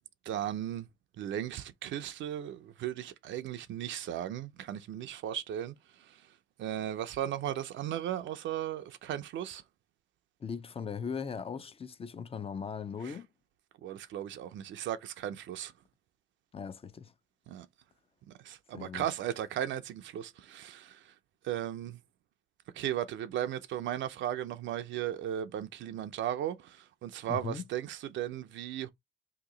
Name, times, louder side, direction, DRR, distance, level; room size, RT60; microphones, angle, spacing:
voice 1, 0.3-0.9 1.2-6.2 6.6-9.6 13.0-13.1 13.8-15.7 17.5-17.7 18.3-21.1 21.4-22.0 22.7-28.9, right 11 dB, 70° right, 0.5 m, -36 dB
voice 2, 10.4-13.3 16.5-17.1 18.7-19.1 27.3-27.7, left 6 dB, 30° left, 0.5 m, -39 dB
2.9 x 2.7 x 3.7 m
cardioid pair, 90°, 20 cm